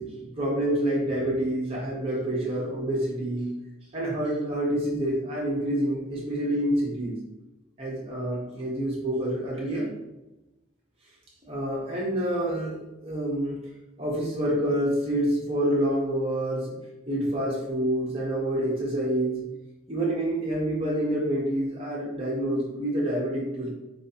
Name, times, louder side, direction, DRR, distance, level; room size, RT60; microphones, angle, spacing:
voice 1, 0.0-3.5 3.9-7.2 7.8-9.9 11.5-13.6 14.0-16.8 17.1-19.4 19.9-23.7, right 1 dB, 30° right, -5 dB, 1.0 m, -27 dB
4.8 x 3.0 x 2.8 m, 1.0 s
head